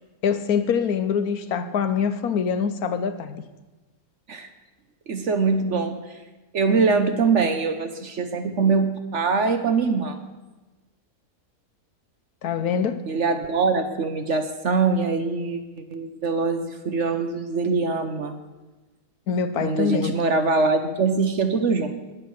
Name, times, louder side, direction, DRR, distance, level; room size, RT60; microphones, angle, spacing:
voice 1, 0.2-3.4 12.4-13.0 19.3-20.2, left 6 dB, 70° left, 11 dB, 1.2 m, -24 dB
voice 2, 5.1-6.0 6.5-10.2 13.1-15.6 15.9-18.4 19.5-21.9, right 4 dB, 55° right, 8 dB, 1.1 m, -23 dB
19.5 x 7.6 x 6.4 m, 1.2 s
omnidirectional pair, 1.7 m